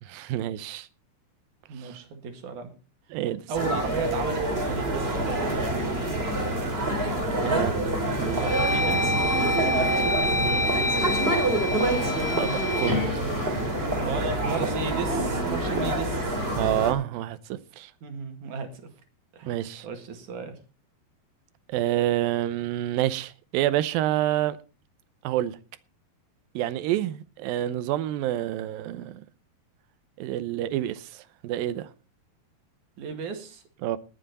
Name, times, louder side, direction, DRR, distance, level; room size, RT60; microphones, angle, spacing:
voice 1, 0.0-0.9 1.8-2.0 3.1-3.4 7.4-7.7 8.2-8.4 12.4-13.0 16.6-17.9 19.5-19.9 21.7-24.6 25.2-25.6 26.6-29.2 30.2-31.9 33.8-34.0, right 13 dB, 75° right, 2.3 m, -28 dB
voice 2, 1.7-2.7 3.5-4.4 4.7-6.1 7.5-7.7 8.4-9.1 9.6-11.2 14.0-16.4 18.0-18.7 19.4-20.6 33.0-33.6, right 5 dB, 55° right, 3.2 m, -34 dB
sound 1, 3.5-16.9, right 1 dB, 15° right, 2.5 m, -27 dB
sound 2, 7.2-7.6 8.1-14.3, left 1 dB, 10° left, 1.1 m, -28 dB
20.5 x 7.8 x 4.2 m
omnidirectional pair, 4.7 m